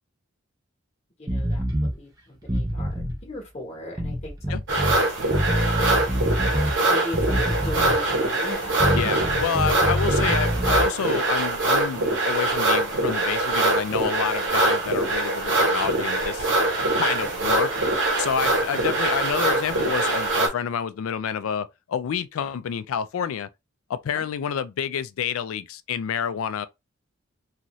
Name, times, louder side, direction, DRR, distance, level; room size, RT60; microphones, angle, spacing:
voice 1, 1.2-5.2 6.8-10.1 17.2-17.4, left 1 dB, 30° left, 1.0 m, -38 dB
sound 1, 1.3-1.9 2.4-3.2 4.0-5.0 5.3-6.8 7.1-8.1 8.8-10.9, equal, 15° right, 0.7 m, -25 dB
sound 2, 4.7-20.5, right 2 dB, 55° right, 1.0 m, -23 dB
voice 2, 8.9-16.5 17.0-17.7 18.2-23.5 23.9-26.7, left 7 dB, 80° left, 0.3 m, -28 dB
2.7 x 2.4 x 3.0 m
head